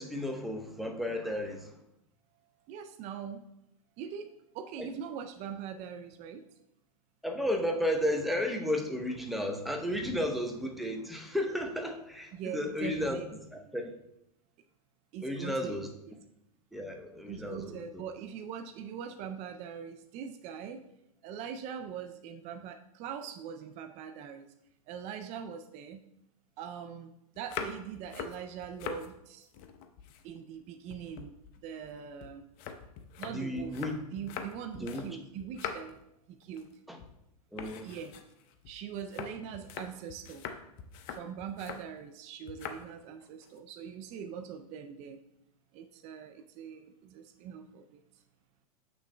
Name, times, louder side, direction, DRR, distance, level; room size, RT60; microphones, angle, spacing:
voice 1, 0.0-1.7 4.8-4.9 7.2-13.2 13.5-13.9 15.2-15.9 16.7-18.0 33.3-34.0 34.7-35.1 36.9-37.0 37.5-37.9, left 1 dB, ahead, 3 dB, 0.8 m, -33 dB
voice 2, 2.7-3.4 4.0-6.5 12.3-13.3 13.6-13.7 15.1-15.8 17.3-20.8 21.2-24.5 24.9-26.0 26.6-29.5 30.2-31.3 31.6-32.5 33.2-33.8 34.1-36.0 36.3-36.7 37.8-38.1 38.7-40.4 41.1-45.2 45.7-48.0, right 8 dB, 40° right, 7 dB, 0.4 m, -42 dB
sound 1, 27.4-29.1 29.4-30.6 30.9-35.1 35.4-36.0 36.4-36.7 37.0-37.2 37.6-41.9 42.5-42.9 43.2-43.6, left 7 dB, 45° left, 0.7 m, -43 dB
8.0 x 6.2 x 2.2 m, 0.82 s
hypercardioid pair, 115°, 19 cm